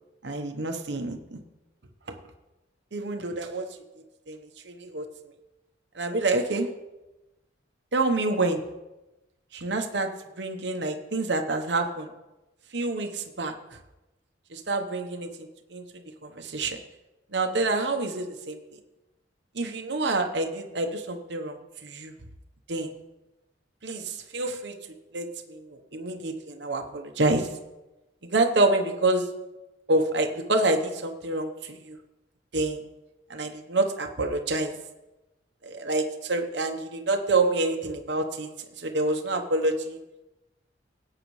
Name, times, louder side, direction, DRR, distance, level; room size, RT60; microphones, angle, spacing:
voice 1, 0.2-1.4 2.9-3.7 4.3-5.0 5.9-6.7 7.9-8.6 9.5-10.1 10.4-12.1 12.7-13.5 14.5-15.3 15.7-15.8 16.2-16.8 17.3-18.6 19.5-21.6 21.8-22.1 22.7-22.9 23.8-24.8 25.1-27.5 28.3-29.3 29.9-32.0 32.5-32.8 33.3-34.8 35.6-38.5 38.8-40.0, right 2 dB, 65° right, 4 dB, 1.0 m, -27 dB
18.0 x 8.8 x 3.2 m, 1.0 s
head